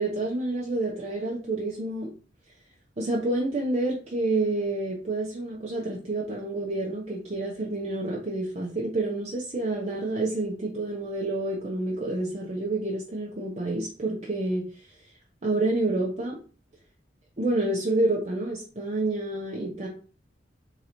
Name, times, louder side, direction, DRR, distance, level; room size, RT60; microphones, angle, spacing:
voice 1, 0.0-2.1 3.0-15.0 15.4-16.4 17.4-19.9, right 2 dB, 40° right, -3 dB, 0.8 m, -28 dB
3.9 x 2.9 x 4.2 m, 0.39 s
head